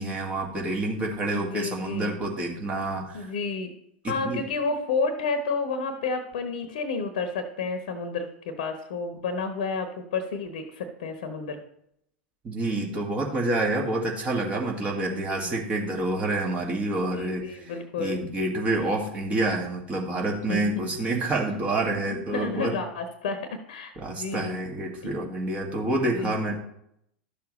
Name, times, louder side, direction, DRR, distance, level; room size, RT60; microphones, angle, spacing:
voice 1, 0.0-3.3 4.0-4.4 12.4-17.7 18.0-22.8 24.0-26.5, right 2 dB, 25° right, 0 dB, 1.9 m, -28 dB
voice 2, 1.3-2.2 3.1-3.7 4.0-11.6 15.1-15.5 17.2-18.2 20.5-20.7 22.1-23.4 23.7-24.6 26.1-26.5, left 4 dB, 55° left, 7 dB, 1.1 m, -31 dB
12.0 x 6.9 x 3.1 m, 0.74 s
figure-of-eight pair, 90°, 5 cm